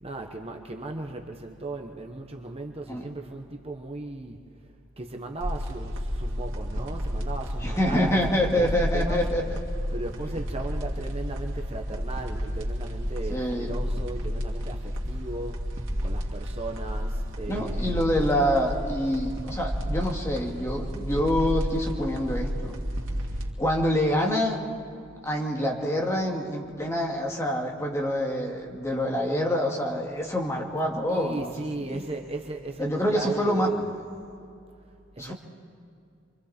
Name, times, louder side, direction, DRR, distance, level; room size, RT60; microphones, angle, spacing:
voice 1, 0.0-9.2 9.9-15.7 16.0-17.9 31.1-33.9 35.1-35.3, right 2 dB, 30° right, 3 dB, 1.1 m, -37 dB
sound 1, 5.4-23.5, equal, 90° right, 2.5 m, -31 dB
voice 2, 7.6-9.6 13.3-13.8 17.5-22.8 23.6-24.6 25.2-31.5 31.8-32.0 32.8-33.7 35.2-35.3, equal, 15° left, -1 dB, 2.3 m, -26 dB
27.5 x 24.0 x 4.4 m, 2.4 s
head